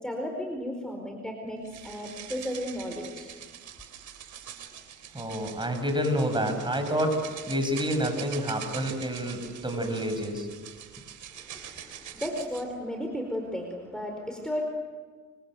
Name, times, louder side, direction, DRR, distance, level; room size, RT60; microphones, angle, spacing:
voice 1, 0.0-3.3 11.3-14.6, equal, ahead, 2 dB, 4.7 m, -34 dB
sound 1, 1.6-12.7, right 9 dB, 75° right, 3.8 m, -44 dB
voice 2, 5.1-7.2 7.5-10.5, equal, 15° right, 5 dB, 7.3 m, -28 dB
27.0 x 25.5 x 7.9 m, 1.5 s
cardioid pair, 90°, 30 cm